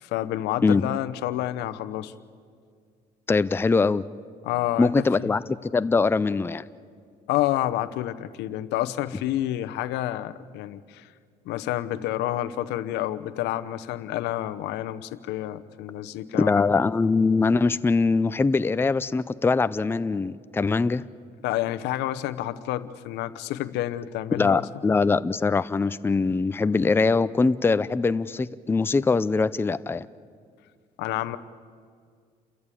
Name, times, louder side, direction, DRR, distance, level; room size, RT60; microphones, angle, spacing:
voice 1, 0.0-2.1 4.4-5.3 7.3-11.1 11.5-16.7 21.4-24.6 31.0-31.4, left 14 dB, 85° left, 12 dB, 0.9 m, -29 dB
voice 2, 3.3-4.0 4.8-5.4 5.7-6.7 16.4-21.0 24.3-30.1, left 4 dB, 15° left, 14 dB, 0.5 m, -22 dB
29.5 x 14.0 x 8.5 m, 2.1 s
cardioid pair, 110°, 17 cm